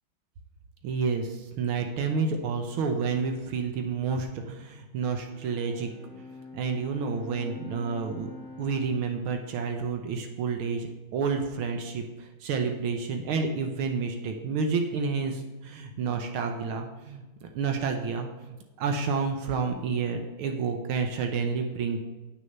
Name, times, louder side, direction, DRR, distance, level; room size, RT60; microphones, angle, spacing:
voice 1, 0.8-5.9 6.5-8.3 8.6-22.0, right 5 dB, 80° right, 4 dB, 1.7 m, -30 dB
Bowed string instrument, 5.1-10.7, left 3 dB, 30° left, 1.4 m, -46 dB
8.9 x 6.5 x 5.3 m, 1.1 s
omnidirectional pair, 2.3 m